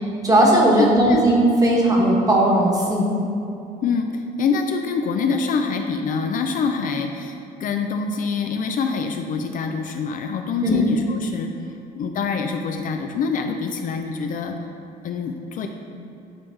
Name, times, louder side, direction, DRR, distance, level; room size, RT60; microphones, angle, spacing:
voice 1, 0.2-3.1 10.6-10.8, right 1 dB, 20° right, -3 dB, 1.3 m, -17 dB
voice 2, 3.8-11.5 11.9-14.6 15.0-15.7, left 5 dB, 55° left, 5 dB, 0.5 m, -25 dB
9.7 x 3.6 x 3.2 m, 2.7 s
cardioid pair, 110°, 17 cm